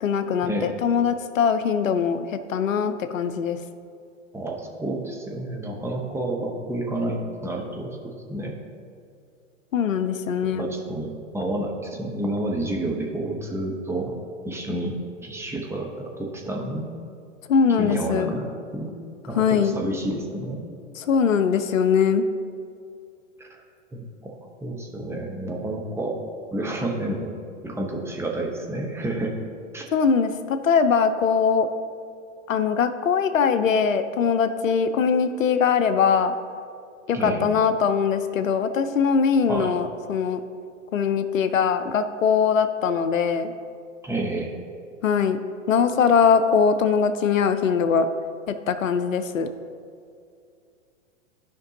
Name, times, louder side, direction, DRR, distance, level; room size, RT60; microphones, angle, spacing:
voice 1, 0.0-3.6 9.7-10.7 17.5-18.3 19.4-19.8 21.0-22.2 29.9-31.7 32.5-36.3 37.1-40.4 40.9-43.5 45.0-45.4 45.7-48.1 48.5-49.5, left 6 dB, 80° left, 10 dB, 0.6 m, -21 dB
voice 2, 4.3-8.5 10.5-14.2 14.4-16.9 17.8-18.4 18.7-18.9 19.3-20.6 23.4-23.6 23.9-26.2 26.5-29.3 29.7-29.8 37.1-37.4 39.5-39.7 44.0-44.5, right 1 dB, 5° right, 0 dB, 0.8 m, -30 dB
12.5 x 5.2 x 2.8 m, 2.4 s
hypercardioid pair, 110°, 39 cm